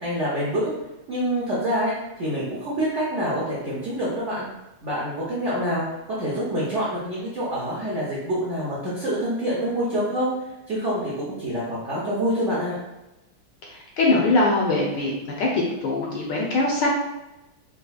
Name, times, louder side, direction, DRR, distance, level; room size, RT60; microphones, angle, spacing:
voice 1, 0.0-0.7 1.1-1.9 2.2-4.5 4.8-10.3 10.7-12.8, equal, 70° right, -7 dB, 0.7 m, -26 dB
voice 2, 13.7-15.1 15.4-16.9, left 2 dB, 75° left, -2 dB, 1.1 m, -22 dB
4.1 x 2.7 x 2.3 m, 0.96 s
omnidirectional pair, 2.3 m